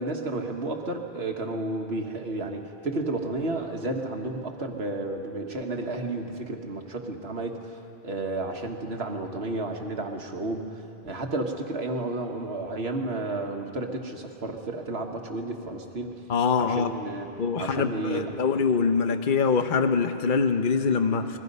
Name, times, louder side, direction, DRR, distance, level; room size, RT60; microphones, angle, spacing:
voice 1, 0.0-7.8 8.0-10.7 11.0-16.1 16.6-17.3 17.6-18.4 21.2-21.4, right 2 dB, 90° right, 3 dB, 1.8 m, -32 dB
voice 2, 16.3-16.9 17.4-21.4, left 5 dB, 55° left, 7 dB, 1.0 m, -24 dB
28.0 x 21.0 x 5.5 m, 2.8 s
omnidirectional pair, 1.0 m